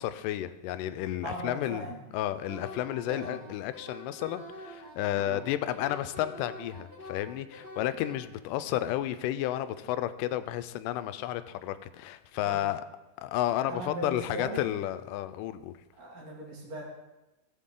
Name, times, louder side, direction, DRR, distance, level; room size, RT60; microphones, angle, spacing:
voice 1, 0.0-1.9 2.1-12.8 13.2-15.7, left 13 dB, 85° left, 12 dB, 2.2 m, -32 dB
voice 2, 1.2-2.1 3.1-3.5 5.2-5.4 12.5-12.7 13.7-14.7 16.0-16.8, right 1 dB, 85° right, -3 dB, 4.1 m, -39 dB
Wind instrument woodwind instrument, 2.5-8.1, left 1 dB, 30° right, 0.3 m, -45 dB
15.5 x 7.2 x 3.7 m, 1.0 s
omnidirectional pair, 3.7 m